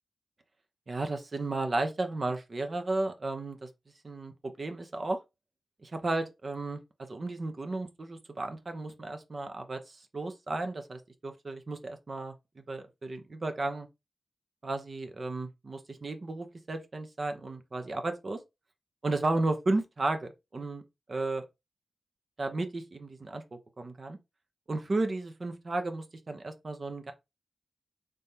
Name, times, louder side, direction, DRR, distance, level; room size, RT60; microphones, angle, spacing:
voice 1, 0.9-3.7 4.0-5.2 5.8-13.9 14.6-18.4 19.0-20.8 21.1-21.4 22.4-24.2 24.7-27.1, right 2 dB, 50° right, 0.8 m, -34 dB
3.5 x 3.4 x 2.8 m
cardioid pair, 65°, 0 cm